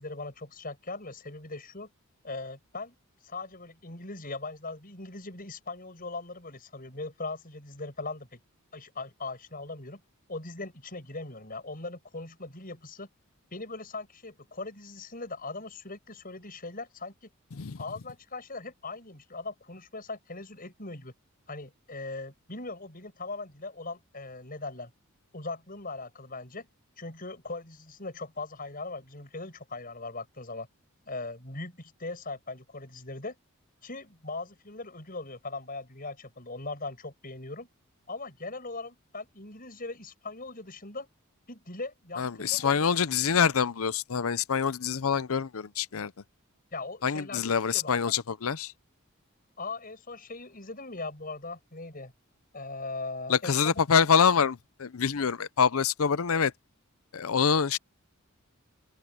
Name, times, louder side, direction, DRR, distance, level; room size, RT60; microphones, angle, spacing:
voice 1, 0.0-1.9 2.2-3.0 3.2-8.4 8.7-10.0 10.3-13.1 13.5-17.1 17.8-21.1 21.5-24.9 25.3-26.7 27.0-30.7 31.1-33.4 33.8-37.7 38.1-41.1 41.5-43.0 46.7-47.4 47.7-48.0 49.6-52.1 52.5-53.8, left 3 dB, 40° left, 7.4 m, -40 dB
voice 2, 42.2-46.1 47.0-48.7 53.3-56.5 57.1-57.8, left 6 dB, 75° left, 0.6 m, -26 dB
open air
head